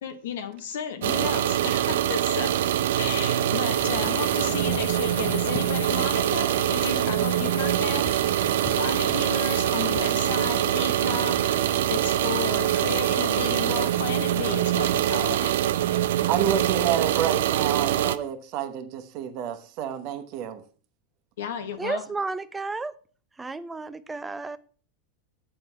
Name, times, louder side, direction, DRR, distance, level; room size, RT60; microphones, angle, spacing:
voice 1, 0.0-2.6 3.0-8.3 8.7-15.6 21.4-22.0, left 7 dB, 75° left, 1.1 m, -33 dB
sound 1, 1.0-18.2, right 12 dB, 75° right, 0.4 m, -24 dB
sound 2, 3.6-14.4, left 9 dB, 55° left, 0.7 m, -40 dB
voice 2, 16.3-20.6, right 9 dB, 55° right, 1.0 m, -29 dB
voice 3, 21.8-22.9 23.4-24.6, right 3 dB, 15° right, 0.5 m, -32 dB
7.7 x 4.3 x 5.7 m
hypercardioid pair, 100°, 0 cm